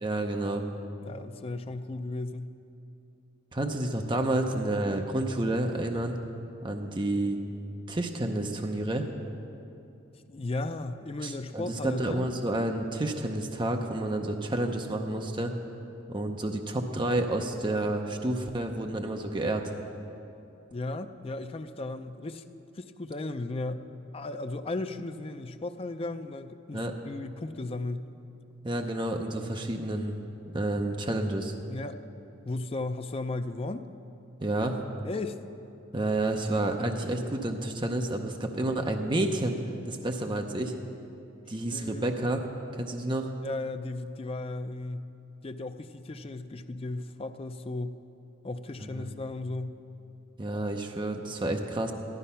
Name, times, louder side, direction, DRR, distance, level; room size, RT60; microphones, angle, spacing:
voice 1, 0.0-0.7 3.5-6.2 6.6-7.4 7.9-9.1 11.2-15.5 16.1-19.7 26.7-26.9 28.6-30.2 30.5-31.5 34.4-34.8 35.9-39.6 39.8-40.7 41.5-42.5 42.8-43.3 48.8-49.1 50.4-51.9, right 1 dB, 25° right, 4 dB, 0.7 m, -30 dB
voice 2, 1.0-2.5 10.3-12.3 20.7-22.4 22.8-23.9 24.1-28.1 31.7-32.0 32.5-33.9 35.0-35.4 41.5-42.2 43.4-45.1 45.4-48.0 48.4-49.8, left 2 dB, 30° left, 9 dB, 0.4 m, -35 dB
14.5 x 12.0 x 5.6 m, 2.8 s
head